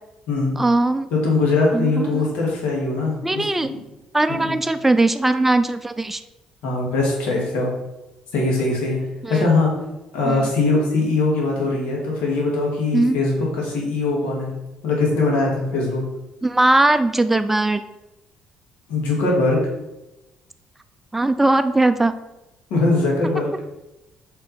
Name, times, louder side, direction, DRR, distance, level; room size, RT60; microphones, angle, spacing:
voice 1, 0.6-1.1 1.7-2.3 3.2-3.7 4.1-6.2 9.2-9.5 10.2-10.5 12.9-13.2 16.4-17.8 21.1-22.2, right 2 dB, 10° right, 10 dB, 0.4 m, -19 dB
voice 2, 1.1-3.8 4.3-4.5 6.6-7.7 8.3-9.0 9.3-9.7 10.1-14.5 14.8-16.0 18.9-19.6 22.7-23.5, left 3 dB, 80° left, -2 dB, 2.1 m, -21 dB
5.1 x 4.4 x 4.2 m, 0.97 s
supercardioid pair, 70°, 2 cm